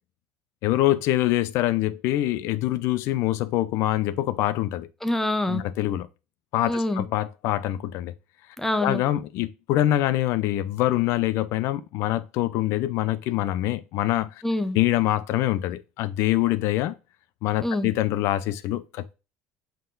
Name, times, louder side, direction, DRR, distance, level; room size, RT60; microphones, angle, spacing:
voice 1, 0.6-4.9 5.5-6.1 6.5-8.1 8.8-14.3 14.7-17.0 17.4-19.1, left 15 dB, 70° left, 0.5 m, -24 dB
voice 2, 5.0-5.6 6.7-7.0 8.6-9.0 14.4-14.8 17.6-17.9, left 1 dB, 5° left, 0.7 m, -25 dB
5.5 x 3.8 x 2.5 m
supercardioid pair, 110°, 5 cm